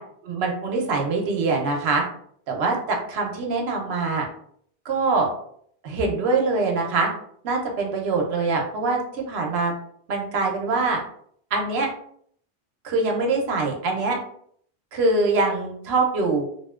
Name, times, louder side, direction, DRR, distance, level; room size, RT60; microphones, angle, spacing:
voice 1, 0.2-2.0 2.5-4.3 4.8-5.3 5.8-7.1 7.4-9.7 10.1-11.0 11.5-11.9 12.8-14.2 14.9-16.4, right 3 dB, 75° right, 1 dB, 0.9 m, -23 dB
2.6 x 2.1 x 2.3 m, 0.64 s
omnidirectional pair, 1.1 m